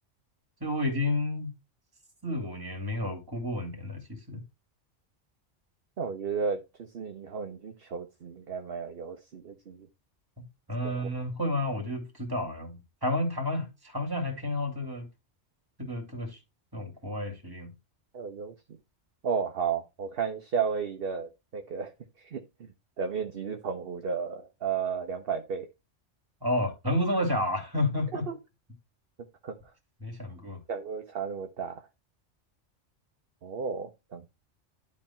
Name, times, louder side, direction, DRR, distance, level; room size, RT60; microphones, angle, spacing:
voice 1, 0.6-1.5 2.2-4.4 10.4-15.1 15.8-16.4 16.7-17.7 26.4-28.3 30.0-30.6, left 1 dB, 15° right, 2.6 m, -31 dB
voice 2, 6.0-9.9 10.8-11.0 18.1-18.5 19.2-21.9 22.2-25.7 28.3-28.4 29.4-29.5 30.7-31.9 33.4-34.3, right 6 dB, 50° right, 1.1 m, -33 dB
11.5 x 4.3 x 4.3 m
omnidirectional pair, 1.3 m